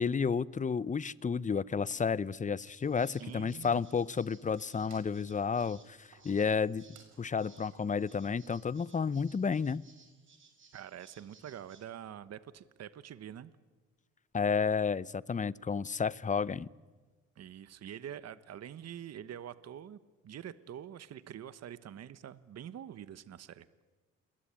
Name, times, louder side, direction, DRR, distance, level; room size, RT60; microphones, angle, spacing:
voice 1, 0.0-6.8 7.2-9.8 14.3-16.7, left 5 dB, 25° left, 20 dB, 0.7 m, -31 dB
Wood, 1.9-2.2 2.5-8.1, right 6 dB, 75° right, 6.6 m, -63 dB
sound 1, 2.7-11.9, right 4 dB, 40° right, 6.1 m, -62 dB
voice 2, 3.2-3.8 10.7-13.5 17.4-20.0 20.2-23.7, right 10 dB, 55° right, 14 dB, 1.2 m, -45 dB
29.0 x 22.0 x 8.9 m, 1.4 s
cardioid pair, 90°, 30 cm